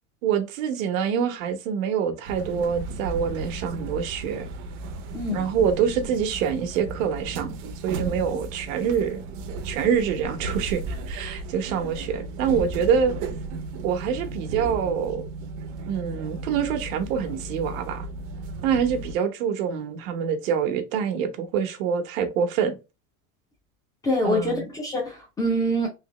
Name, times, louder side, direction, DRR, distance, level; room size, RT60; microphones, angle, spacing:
voice 1, 0.2-4.5 5.3-7.5 7.8-9.2 9.6-13.2 13.8-15.2 15.9-18.1 18.6-22.8 24.2-24.6, right 7 dB, 85° right, 1.0 m, -25 dB
sound 1, 2.2-19.1, right 3 dB, 45° right, 0.6 m, -35 dB
voice 2, 24.0-25.9, equal, 10° left, 0.4 m, -25 dB
3.3 x 2.9 x 2.9 m
cardioid pair, 180°, 39 cm